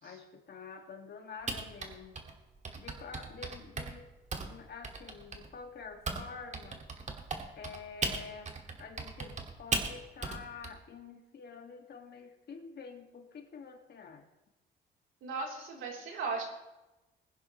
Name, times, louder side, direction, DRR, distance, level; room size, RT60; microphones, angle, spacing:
voice 1, 0.0-2.2 2.8-4.1 4.4-6.8 7.6-14.2, left 5 dB, 55° left, 4 dB, 2.1 m, -48 dB
Typing, 1.5-6.2 6.5-10.7, right 3 dB, 35° right, 2.1 m, -37 dB
voice 2, 15.2-16.4, right 4 dB, 85° right, -1 dB, 3.6 m, -37 dB
20.5 x 10.5 x 3.2 m, 0.98 s
cardioid pair, 90°, 20 cm